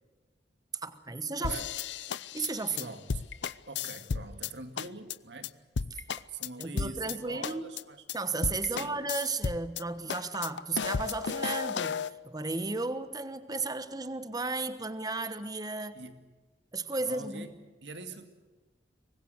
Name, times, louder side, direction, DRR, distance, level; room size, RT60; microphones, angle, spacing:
voice 1, 0.8-1.6 2.3-2.9 5.9-6.0 6.6-7.6 8.1-12.0 12.2-16.0 16.7-17.5, right 3 dB, 20° right, 11 dB, 1.3 m, -34 dB
sound 1, 1.4-4.5 4.8-5.2 5.4-5.5 5.8-7.2 7.4-7.8 8.1-8.2 8.4-9.8 10.1-12.1, left 5 dB, 85° left, 0.6 m, -34 dB
voice 2, 1.4-1.7 2.8-3.2 3.7-5.6 6.3-8.0 8.7-9.0 15.9-16.2 17.0-17.6 17.8-18.3, right 3 dB, 75° right, 8 dB, 2.2 m, -43 dB
24.0 x 20.5 x 7.9 m, 1.3 s
head